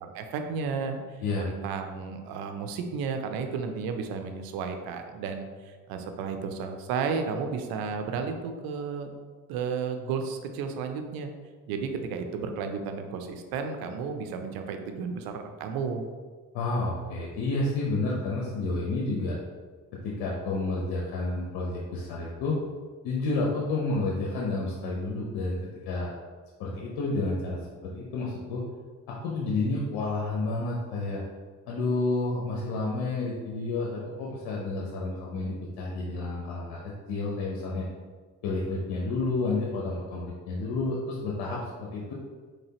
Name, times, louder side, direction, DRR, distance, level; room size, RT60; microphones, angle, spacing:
voice 1, 0.0-9.1 9.5-11.3 11.7-16.0, right 5 dB, 80° right, 6 dB, 0.5 m, -33 dB
voice 2, 16.5-19.4 20.0-22.6 23.0-25.6 25.9-26.1 26.6-28.6 29.1-31.2 31.7-37.9 38.4-42.1, left 2 dB, 85° left, -4 dB, 0.7 m, -30 dB
4.0 x 3.3 x 2.8 m, 1.5 s
supercardioid pair, 75°, 35 cm